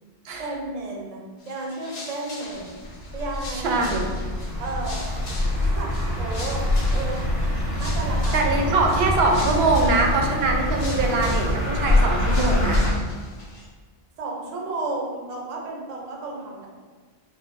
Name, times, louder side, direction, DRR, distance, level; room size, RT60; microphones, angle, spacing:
voice 1, 0.4-2.8 3.1-3.8 4.6-5.1 5.5-7.4 7.8-8.6 14.2-16.7, right 2 dB, 50° right, -1 dB, 0.5 m, -33 dB
sound 1, 1.4-13.6, left 2 dB, 80° left, 1.0 m, -41 dB
sound 2, 2.6-12.9, left 1 dB, 45° left, 0.8 m, -24 dB
voice 2, 3.5-4.1 8.3-12.9, right 3 dB, 80° right, 1 dB, 0.8 m, -23 dB
3.8 x 2.5 x 2.5 m, 1.5 s
omnidirectional pair, 1.0 m